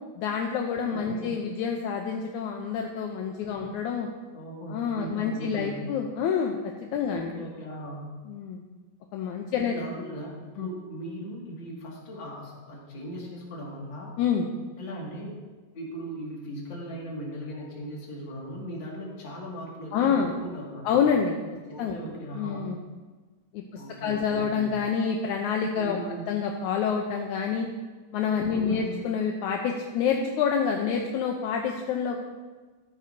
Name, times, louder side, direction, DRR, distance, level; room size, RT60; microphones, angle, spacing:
voice 1, 0.2-4.1 4.7-6.6 6.9-7.3 8.3-8.6 9.1-9.8 10.6-10.7 14.2-14.5 19.9-20.3 20.8-21.4 21.8-22.0 22.3-22.8 23.5-26.0 26.3-27.7 28.1-32.2, left 6 dB, 75° left, 1 dB, 2.0 m, -27 dB
voice 2, 0.9-1.4 3.6-3.7 4.3-5.9 7.0-8.0 9.6-14.1 14.8-15.4 15.7-21.0 21.7-22.8 23.8-24.7 25.8-26.2 28.5-28.9, equal, 40° left, -3 dB, 2.6 m, -38 dB
14.0 x 11.5 x 2.7 m, 1.3 s
omnidirectional pair, 3.8 m